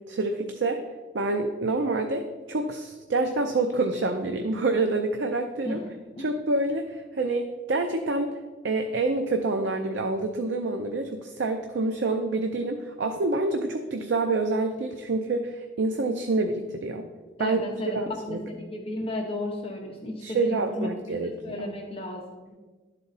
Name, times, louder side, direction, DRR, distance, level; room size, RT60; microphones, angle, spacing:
voice 1, 0.1-0.8 1.1-5.8 6.2-8.4 8.6-17.1 17.4-17.6 17.9-18.4 20.2-21.7, right 3 dB, 75° right, 5 dB, 0.5 m, -27 dB
voice 2, 17.4-22.5, left 1 dB, 30° left, 1 dB, 0.7 m, -34 dB
11.0 x 4.1 x 4.0 m, 1.3 s
head